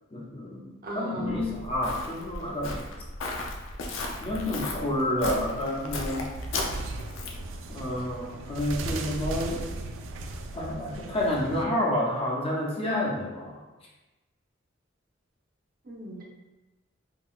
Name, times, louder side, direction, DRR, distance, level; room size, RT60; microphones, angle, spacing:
voice 1, 0.1-2.9 4.2-6.3 7.7-9.6 10.5-13.6, left 1 dB, 30° left, -3 dB, 0.5 m, -29 dB
voice 2, 0.8-1.4 15.9-16.2, right 2 dB, 50° right, -3 dB, 0.6 m, -36 dB
Walk footsteps, 1.2-7.5, left 2 dB, 90° left, 0.5 m, -35 dB
sound 1, 6.4-11.7, right 2 dB, 85° right, 0.3 m, -37 dB
3.6 x 2.3 x 2.4 m, 1.1 s
head